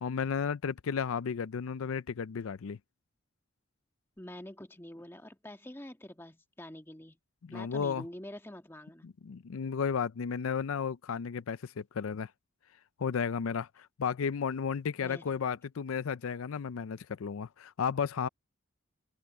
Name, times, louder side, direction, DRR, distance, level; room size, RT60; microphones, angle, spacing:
voice 1, 0.0-2.8 7.4-8.0 9.0-12.3 13.0-18.3, left 6 dB, 85° left, 0.5 m, -33 dB
voice 2, 4.2-7.2 7.5-9.1 15.0-15.2, left 1 dB, 10° left, 1.6 m, -46 dB
open air
head